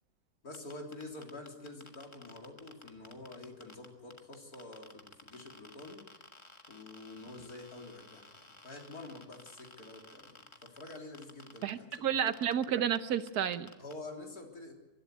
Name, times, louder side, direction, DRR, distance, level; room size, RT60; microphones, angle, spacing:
voice 1, 0.4-6.0 6.7-12.1 13.8-14.7, left 2 dB, 75° left, 1 dB, 4.0 m, -48 dB
sound 1, 0.5-12.0 12.3-12.6 12.9-13.0 13.3-13.9, left 2 dB, 20° left, 1.5 m, -53 dB
voice 2, 11.6-13.7, right 9 dB, 90° right, 11 dB, 1.5 m, -31 dB
24.0 x 12.0 x 9.4 m, 1.1 s
omnidirectional pair, 1.6 m